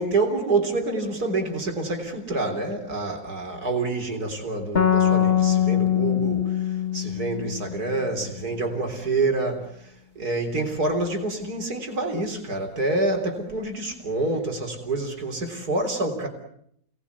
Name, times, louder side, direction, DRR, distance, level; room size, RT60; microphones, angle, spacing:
voice 1, 0.0-9.9 10.2-16.3, right 2 dB, 75° right, 4.1 m, -27 dB
sound 1, 4.7-8.3, left 10 dB, 40° left, 1.5 m, -23 dB
29.0 x 19.0 x 8.3 m
omnidirectional pair, 1.7 m